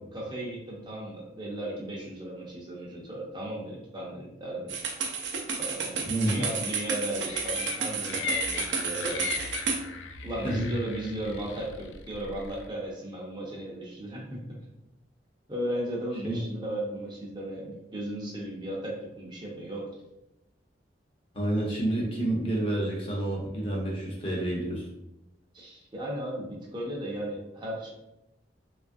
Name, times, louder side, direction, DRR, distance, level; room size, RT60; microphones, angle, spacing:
voice 1, 0.1-4.7 5.6-9.3 10.2-14.4 15.5-19.8 21.7-21.8 25.5-27.9, right 1 dB, 25° right, -3 dB, 0.5 m, -36 dB
sound 1, 4.7-9.8, right 5 dB, 80° right, 0.5 m, -31 dB
voice 2, 6.1-6.4 10.4-10.7 16.2-16.4 21.3-24.9, right 1 dB, 30° left, -3 dB, 0.6 m, -29 dB
sound 2, 7.2-12.7, left 5 dB, 85° left, 0.3 m, -37 dB
2.9 x 2.4 x 2.5 m, 0.90 s
head